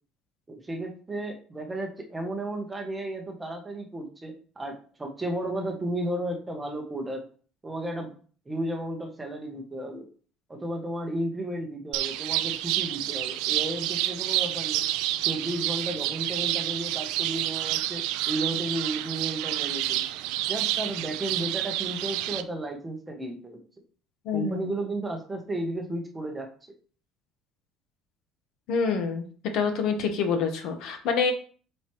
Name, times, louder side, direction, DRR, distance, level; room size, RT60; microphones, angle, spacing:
voice 1, 0.5-7.3 7.6-8.1 8.5-10.1 10.5-14.9 15.2-20.0 20.5-23.6 24.3-26.5, right 1 dB, 10° right, 3 dB, 0.9 m, -33 dB
sound 1, 11.9-22.4, right 14 dB, 85° right, 0.5 m, -29 dB
voice 2, 24.2-24.7 28.7-29.2 29.5-31.3, left 5 dB, 55° left, 6 dB, 1.1 m, -26 dB
7.8 x 4.3 x 3.0 m, 0.43 s
cardioid pair, 175°, 0 cm